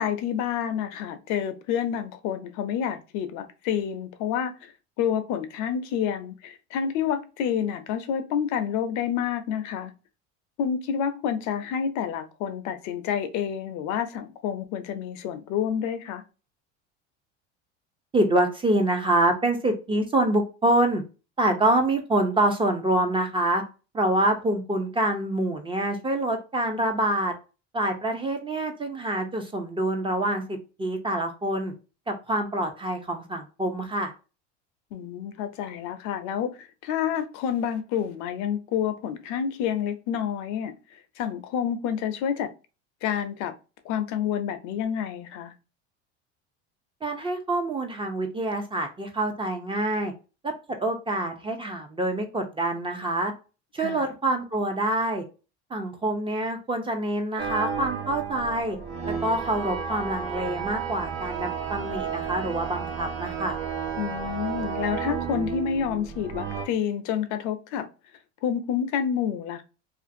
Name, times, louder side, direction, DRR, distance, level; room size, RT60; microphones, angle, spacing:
voice 1, 0.0-4.7 5.0-9.9 10.6-16.2 34.9-40.7 41.2-42.5 43.0-43.5 43.8-45.5 53.8-54.1 64.0-67.9 68.4-69.6, left 8 dB, 60° left, 0.5 m, -28 dB
voice 2, 18.1-21.0 21.4-23.6 23.9-27.3 27.7-31.7 32.1-34.1 47.0-50.1 50.4-50.5 50.8-53.3 53.7-55.2 55.7-58.8 59.1-63.6, right 1 dB, 15° right, 0.4 m, -26 dB
sound 1, 57.4-66.7, right 6 dB, 70° right, 0.9 m, -32 dB
2.5 x 2.4 x 2.5 m
supercardioid pair, 105°, 33 cm